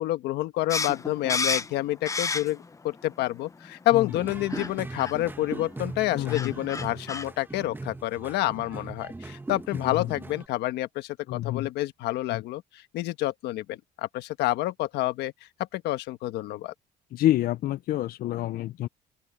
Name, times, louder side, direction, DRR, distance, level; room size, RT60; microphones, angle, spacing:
voice 1, 0.0-15.3 15.7-16.7, left 16 dB, 85° left, 1.3 m, -28 dB
sound 1, 0.7-2.8 3.1-3.9 4.5-4.7 5.0-5.1 6.0-6.1 6.3-7.3, left 4 dB, 20° left, 0.7 m, -30 dB
sound 2, 4.1-10.5, right 2 dB, 10° right, 1.3 m, -39 dB
voice 2, 6.1-6.5 9.7-10.1 11.3-11.7 12.3-12.4 17.1-18.9, left 14 dB, 60° left, 0.5 m, -28 dB
open air
cardioid pair, 110°, 17 cm